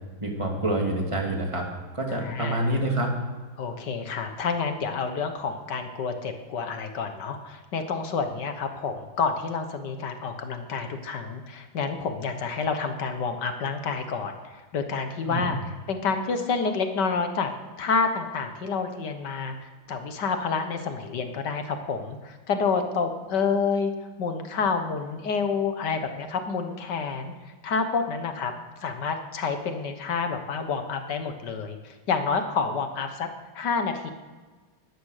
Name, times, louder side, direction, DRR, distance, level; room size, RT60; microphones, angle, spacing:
voice 1, 0.2-1.7 1.9-3.2 15.3-15.5, right 1 dB, 15° right, 0 dB, 2.5 m, -27 dB
voice 2, 2.1-2.7 3.6-15.6 15.9-17.5 17.8-23.9 24.2-28.5 28.8-33.3 33.6-34.1, left 5 dB, 65° left, 7 dB, 1.7 m, -29 dB
16.5 x 11.5 x 6.5 m, 1.4 s
omnidirectional pair, 2.1 m